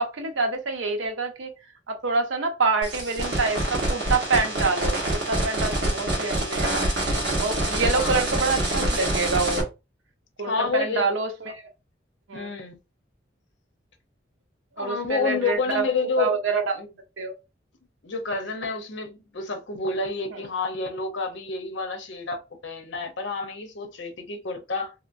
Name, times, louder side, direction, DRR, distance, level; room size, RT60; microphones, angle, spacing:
voice 1, 0.0-1.5 1.9-6.9 7.4-9.6 10.4-11.6 12.3-12.5 14.8-15.8 16.2-16.8 17.2-17.3 20.3-20.4, right 4 dB, 85° right, 0.7 m, -26 dB
sound 1, 2.8-9.6, right 1 dB, 60° right, 1.2 m, -26 dB
voice 2, 10.5-11.1 12.3-12.8 14.8-16.3 16.8-16.9 18.0-24.9, left 4 dB, 75° left, 0.8 m, -29 dB
3.0 x 2.9 x 2.6 m
head